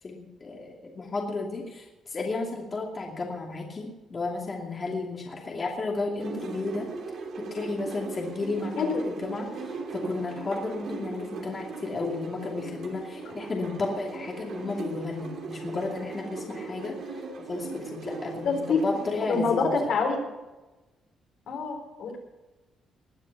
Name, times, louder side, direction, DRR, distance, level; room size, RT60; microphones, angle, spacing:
voice 1, 0.0-6.9 7.4-19.7, left 3 dB, 35° left, -1 dB, 2.6 m, -33 dB
sound 1, 6.2-19.5, right 3 dB, 70° right, 2.7 m, -38 dB
voice 2, 18.4-18.8 19.3-20.3 21.5-22.2, left 4 dB, 70° left, 1 dB, 4.3 m, -26 dB
21.0 x 7.4 x 6.7 m, 1.1 s
cardioid pair, 90°, 0 cm